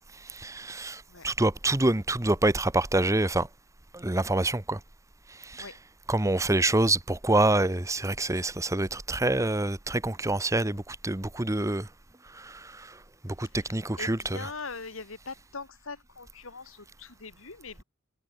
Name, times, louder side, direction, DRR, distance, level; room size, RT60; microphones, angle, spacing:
voice 1, 0.2-3.5 3.9-4.8 5.4-5.7 6.1-11.9 12.3-13.0 13.2-14.5, right 2 dB, 15° right, 1.1 m, -26 dB
voice 2, 13.6-17.8, left 4 dB, 75° left, 2.3 m, -42 dB
head